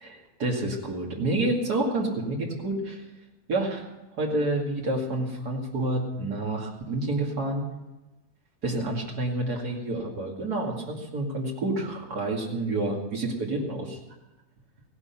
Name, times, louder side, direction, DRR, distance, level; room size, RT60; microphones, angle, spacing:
voice 1, 0.0-3.0 3.5-7.6 8.6-14.0, right 2 dB, 70° right, -1 dB, 2.9 m, -29 dB
16.5 x 11.5 x 5.9 m, 1.0 s
omnidirectional pair, 1.7 m